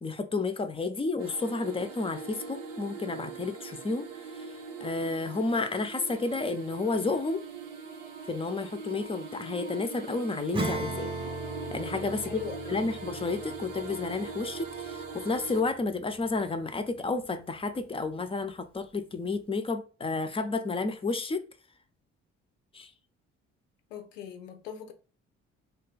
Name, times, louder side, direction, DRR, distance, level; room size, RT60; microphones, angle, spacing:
voice 1, 0.0-4.1 4.3-4.5 4.8-7.4 8.3-11.1 11.7-12.4 12.7-21.4 22.7-22.9, left 3 dB, 15° left, 0.4 m, -31 dB
sound 1, 1.2-15.6, right 4 dB, 90° right, 0.5 m, -42 dB
Acoustic guitar / Strum, 10.5-16.5, right 2 dB, 15° right, 0.7 m, -38 dB
voice 2, 12.2-12.9 23.9-24.9, left 7 dB, 85° left, 0.5 m, -41 dB
2.3 x 2.3 x 3.8 m
figure-of-eight pair, 45°, 37 cm